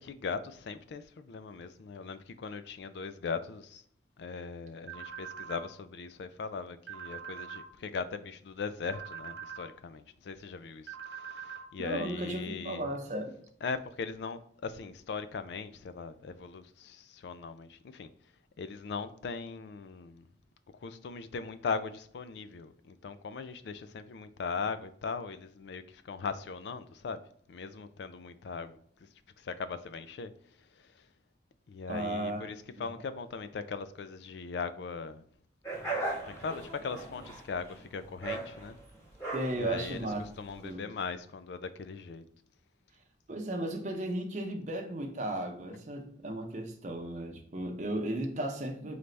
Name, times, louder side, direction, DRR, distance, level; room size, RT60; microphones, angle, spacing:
voice 1, 0.0-3.8 4.2-12.9 13.6-18.1 18.6-20.2 20.8-27.2 27.5-28.8 29.4-30.3 30.8-31.0 31.7-35.2 36.3-38.8 39.6-40.1 40.4-42.2, left 5 dB, 65° left, 0.3 m, -39 dB
sound 1, 4.9-5.6 6.9-7.6 8.9-9.6 10.9-11.6, right 8 dB, 75° right, 1.1 m, -43 dB
voice 2, 11.8-13.4 31.9-32.5 32.8-32.9 39.3-40.2 40.6-40.9 43.3-49.0, right 1 dB, 40° right, 0.7 m, -35 dB
sound 2, 35.6-40.7, right 2 dB, 15° left, 1.3 m, -38 dB
3.9 x 3.3 x 3.2 m
head